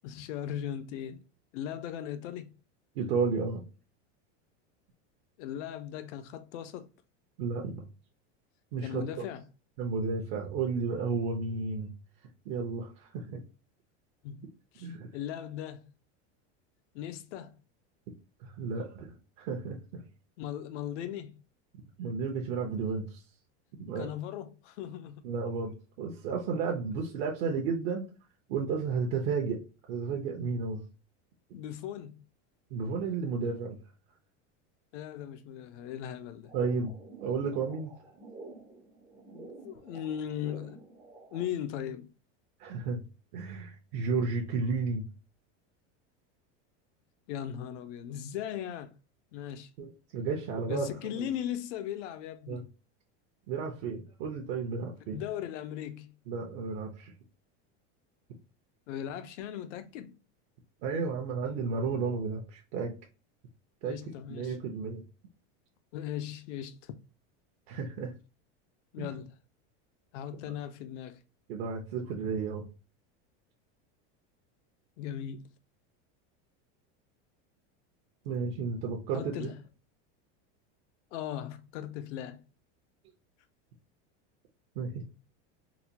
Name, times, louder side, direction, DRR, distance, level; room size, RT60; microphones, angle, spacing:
voice 1, 0.0-1.2 1.5-2.6 5.4-6.9 8.8-9.4 14.2-14.5 14.7-15.9 16.9-17.6 20.4-21.4 24.0-25.2 31.5-32.2 34.9-36.5 39.3-40.8 41.3-42.1 47.3-49.0 49.3-49.7 50.7-52.7 55.1-56.1 58.9-60.2 63.8-64.6 65.9-66.9 68.9-69.4 70.1-71.2 75.0-75.5 79.1-79.6 81.1-82.4, left 10 dB, 80° left, 0.7 m, -38 dB
voice 2, 2.9-3.6 7.4-7.8 8.7-9.2 9.8-11.9 12.5-13.4 14.8-15.1 18.4-20.0 22.0-23.2 23.8-24.1 25.2-28.1 28.5-29.6 29.9-30.8 32.7-33.8 36.5-36.9 37.2-37.9 42.6-43.0 43.3-45.1 49.8-51.3 52.5-52.6 53.5-55.2 56.3-57.1 60.8-62.9 63.8-65.0 67.7-68.1 69.0-69.1 71.5-72.7 78.2-79.5 84.8-85.0, right 5 dB, 55° right, 0.7 m, -33 dB
sound 1, 36.4-41.5, right 3 dB, 15° right, 0.4 m, -50 dB
4.0 x 2.2 x 2.8 m
supercardioid pair, 175°, 35 cm